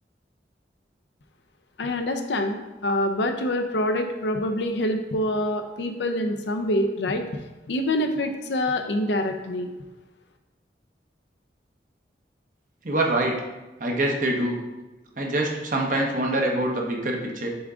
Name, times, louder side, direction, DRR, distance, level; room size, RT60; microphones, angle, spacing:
voice 1, 1.8-7.2 7.7-9.7, left 1 dB, 80° left, 6 dB, 0.6 m, -26 dB
voice 2, 12.8-13.3 13.8-14.6 15.2-17.5, right 1 dB, 45° right, 0 dB, 0.9 m, -25 dB
7.0 x 3.6 x 3.7 m, 1.1 s
head